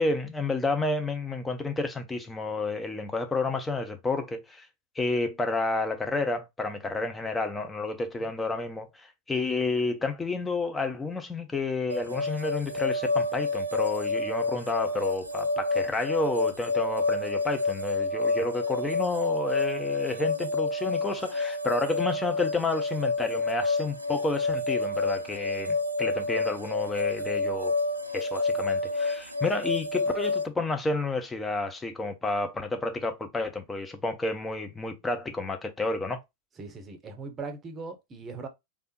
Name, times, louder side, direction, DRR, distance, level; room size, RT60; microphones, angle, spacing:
voice 1, 0.0-4.7 5.0-27.7 28.1-36.2, left 3 dB, 10° left, 0.6 m, -30 dB
sound 1, 11.9-30.5, left 3 dB, 85° right, 0.4 m, -29 dB
voice 2, 36.6-38.5, right 4 dB, 25° right, 0.8 m, -39 dB
3.3 x 2.5 x 2.9 m
figure-of-eight pair, 90°, 0 cm